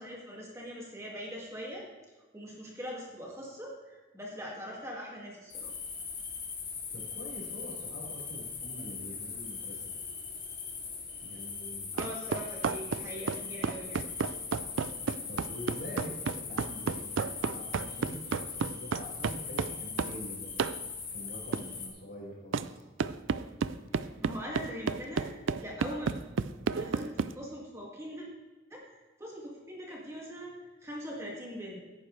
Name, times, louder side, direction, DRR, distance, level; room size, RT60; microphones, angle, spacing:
voice 1, 0.0-1.9 2.3-5.7 11.9-14.0 23.9-25.3 25.6-26.1 26.7-28.2 28.7-28.8 29.2-31.8, equal, 15° right, -3 dB, 2.2 m, -42 dB
sound 1, 5.5-21.9, left 5 dB, 45° left, 3.2 m, -40 dB
voice 2, 6.9-9.8 11.2-11.9 15.3-20.7 21.1-22.8, equal, 65° left, -4 dB, 4.7 m, -45 dB
sound 2, 12.0-20.2 20.6-20.8 21.5-21.7 22.5-22.7 23.0-27.3, right 5 dB, 90° right, 0.4 m, -32 dB
16.5 x 9.6 x 3.3 m, 1.2 s
head